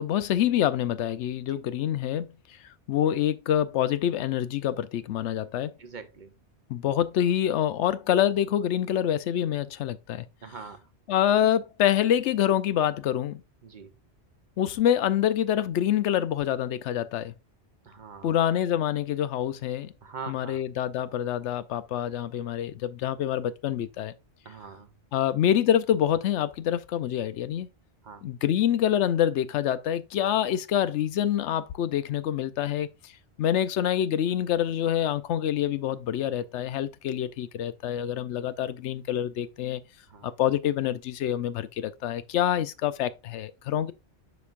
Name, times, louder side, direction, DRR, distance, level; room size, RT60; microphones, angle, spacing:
voice 1, 0.0-2.3 2.9-5.8 6.7-10.3 11.1-13.4 14.6-17.3 18.2-19.9 20.3-24.1 25.1-27.7 28.2-32.9 33.4-39.8 40.2-43.9, left 10 dB, 80° left, 0.9 m, -26 dB
voice 2, 5.8-6.3 10.4-10.9 13.6-13.9 17.8-18.3 20.0-20.6 24.4-24.9 28.0-28.3 40.1-40.3, right 5 dB, 50° right, 0.8 m, -43 dB
7.9 x 5.2 x 2.4 m
omnidirectional pair, 1.2 m